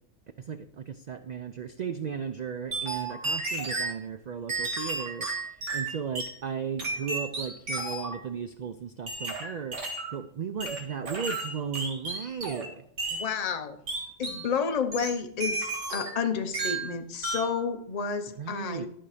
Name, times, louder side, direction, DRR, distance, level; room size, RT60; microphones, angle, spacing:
voice 1, 0.4-12.8 18.4-18.9, right 7 dB, 60° right, 10 dB, 0.4 m, -36 dB
sound 1, 2.7-4.0 4.5-6.4 6.8-8.2 9.1-10.1 10.6-12.7 13.0-13.3 13.9-14.5 14.9-16.2 16.5-16.9 17.2-17.6, right 3 dB, 75° right, 2.0 m, -33 dB
voice 2, 13.1-13.8 14.2-18.9, left 6 dB, 35° left, 7 dB, 0.8 m, -31 dB
12.0 x 5.6 x 4.9 m, 0.70 s
omnidirectional pair, 1.3 m